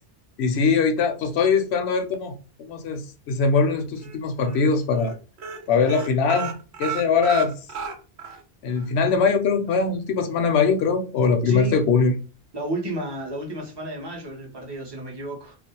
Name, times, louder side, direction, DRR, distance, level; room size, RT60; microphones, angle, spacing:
voice 1, 0.4-5.1 5.7-6.5 6.8-7.5 8.6-12.1, left 5 dB, 80° left, 0.8 m, -21 dB
sound 1, 3.6-4.2 4.5-4.7 4.9-5.1 5.4-8.4 8.8-8.9 9.2-9.3, right 6 dB, 85° right, 0.9 m, -33 dB
voice 2, 11.4-11.8 12.5-15.6, right 1 dB, 25° right, 0.7 m, -32 dB
2.4 x 2.0 x 2.7 m
omnidirectional pair, 1.1 m